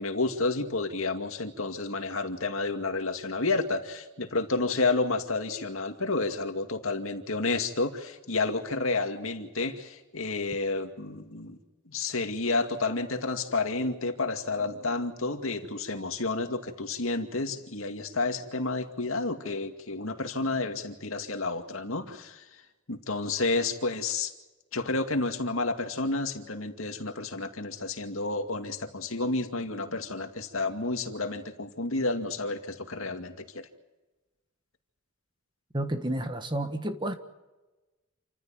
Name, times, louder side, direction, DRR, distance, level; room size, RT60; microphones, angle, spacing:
voice 1, 0.0-11.6 11.9-22.4 22.9-24.3 24.7-33.7, left 3 dB, 75° left, 6 dB, 2.3 m, -30 dB
voice 2, 35.7-37.2, right 1 dB, 20° right, 8 dB, 1.5 m, -30 dB
28.5 x 15.0 x 8.9 m, 1.1 s
head